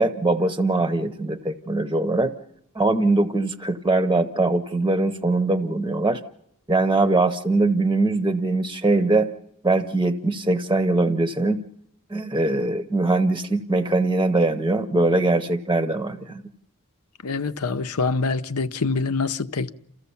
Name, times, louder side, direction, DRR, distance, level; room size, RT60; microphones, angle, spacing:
voice 1, 0.0-2.3 2.7-6.2 6.7-9.3 9.6-11.6 12.1-16.4, right 2 dB, 15° right, 0.7 m, -22 dB
voice 2, 17.2-19.7, left 4 dB, 80° left, 0.8 m, -25 dB
28.0 x 15.0 x 7.1 m
head